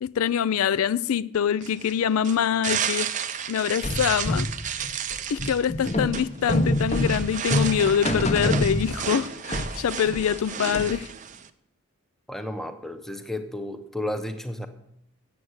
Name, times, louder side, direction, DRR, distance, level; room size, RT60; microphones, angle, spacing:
voice 1, 0.0-3.1 3.5-4.5 5.3-11.1, left 8 dB, 90° left, 0.4 m, -24 dB
sound 1, 1.6-11.5, right 8 dB, 35° right, 0.5 m, -33 dB
sound 2, 3.8-9.3 9.5-11.1, left 1 dB, 30° left, 0.9 m, -26 dB
voice 2, 12.3-14.7, left 1 dB, ahead, 0.7 m, -32 dB
8.5 x 7.7 x 8.0 m
head